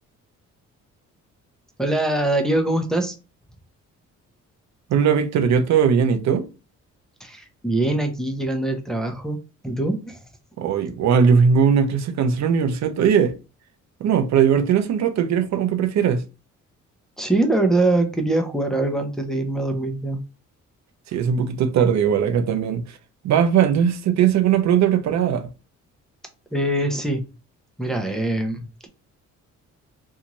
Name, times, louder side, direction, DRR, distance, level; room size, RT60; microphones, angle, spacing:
voice 1, 1.8-3.1 7.2-9.4 9.6-10.2 17.2-20.2 26.5-27.2 27.8-28.9, right 2 dB, ahead, 0.7 m, -23 dB
voice 2, 4.9-6.5 10.6-13.3 14.0-16.2 21.1-22.8 23.2-25.5, right 7 dB, 65° right, 0.6 m, -19 dB
2.6 x 2.4 x 3.0 m
cardioid pair, 90°, 30 cm